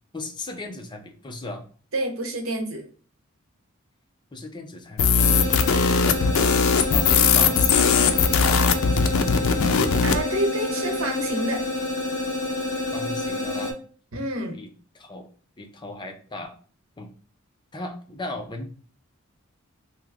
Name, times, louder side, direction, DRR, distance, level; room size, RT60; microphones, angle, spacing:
voice 1, 0.1-1.6 4.3-6.5 6.9-8.8 12.9-13.8 14.5-15.3 15.6-16.6 17.0-17.1 17.7-18.7, left 2 dB, 20° left, 4 dB, 0.5 m, -37 dB
voice 2, 1.9-2.8 10.0-11.6 14.1-14.6, right 1 dB, 85° right, 3 dB, 1.0 m, -28 dB
sound 1, 5.0-10.2, left 6 dB, 80° left, 0.4 m, -20 dB
sound 2, 5.2-13.7, left 2 dB, 40° left, 1.1 m, -28 dB
3.0 x 2.3 x 3.3 m, 0.43 s
head